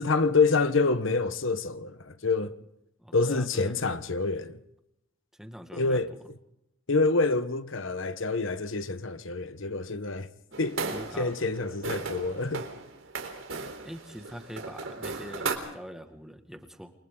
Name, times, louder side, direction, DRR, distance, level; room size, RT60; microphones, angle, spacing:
voice 1, 0.0-2.6 3.1-4.6 5.7-6.1 6.9-10.3 10.6-10.8 11.2-12.7, left 3 dB, 75° left, 1.2 m, -27 dB
voice 2, 3.0-4.0 5.4-6.2 10.5-10.6 10.9-11.3 13.8-16.9, equal, ahead, 1.9 m, -44 dB
sound 1, 10.5-15.5, right 4 dB, 85° right, 4.0 m, -36 dB
29.0 x 23.5 x 3.9 m
head